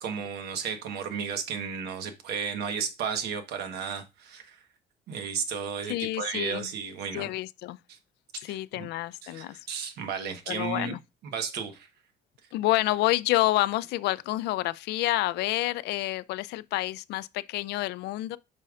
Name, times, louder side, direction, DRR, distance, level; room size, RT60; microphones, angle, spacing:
voice 1, 0.0-4.6 5.1-7.3 7.9-8.0 8.3-8.9 9.2-10.9 11.2-11.9, right 6 dB, 75° right, 1.3 m, -34 dB
voice 2, 5.8-6.7 7.1-7.8 8.4-9.6 10.5-11.0 12.5-18.4, left 17 dB, 80° left, 0.4 m, -28 dB
8.4 x 5.4 x 2.4 m
cardioid pair, 110°, 17 cm